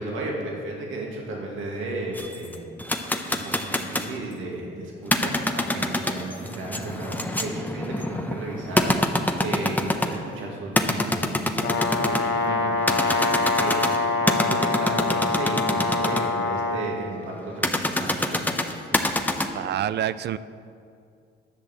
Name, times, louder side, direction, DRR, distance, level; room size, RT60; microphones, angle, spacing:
voice 1, 0.0-2.7 3.3-13.8 14.2-18.5, right 2 dB, 85° right, -2 dB, 2.2 m, -34 dB
sound 1, 2.1-4.2 5.0-10.3 10.8-12.3 12.8-16.2 17.6-19.5, left 1 dB, 10° left, 0.8 m, -25 dB
Brass instrument, 11.6-16.9, left 3 dB, 75° left, 1.0 m, -25 dB
voice 2, 19.5-20.4, right 11 dB, 60° right, 15 dB, 0.4 m, -27 dB
10.5 x 6.2 x 7.4 m, 2.4 s
cardioid pair, 90°, 20 cm